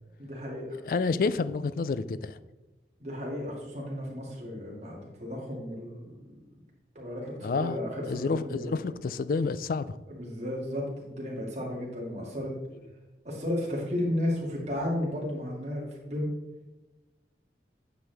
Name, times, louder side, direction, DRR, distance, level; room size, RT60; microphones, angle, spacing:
voice 1, 0.2-0.7 3.0-6.1 6.9-8.7 10.1-12.5 13.2-16.3, left 1 dB, 40° right, -3 dB, 2.2 m, -33 dB
voice 2, 0.9-2.4 7.4-7.8 8.1-10.0, left 4 dB, 50° left, 15 dB, 0.3 m, -29 dB
9.3 x 6.1 x 3.4 m, 1.1 s
head